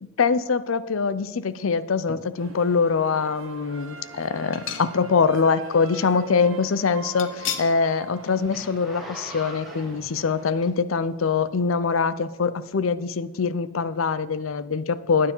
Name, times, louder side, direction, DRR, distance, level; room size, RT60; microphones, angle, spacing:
voice 1, 0.0-15.3, left 5 dB, 85° left, 15 dB, 0.6 m, -23 dB
sound 1, 2.1-2.7 3.2-3.3 4.5-5.3 5.6-5.7 7.2-7.8 8.2-8.4 8.7-8.8, left 8 dB, 70° left, 0.9 m, -35 dB
sound 2, 2.4-10.6, right 4 dB, 90° right, 1.2 m, -44 dB
Zipper (clothing), 6.2-11.1 11.7-11.8, right 1 dB, ahead, 2.1 m, -42 dB
9.6 x 9.4 x 5.5 m, 1.1 s
head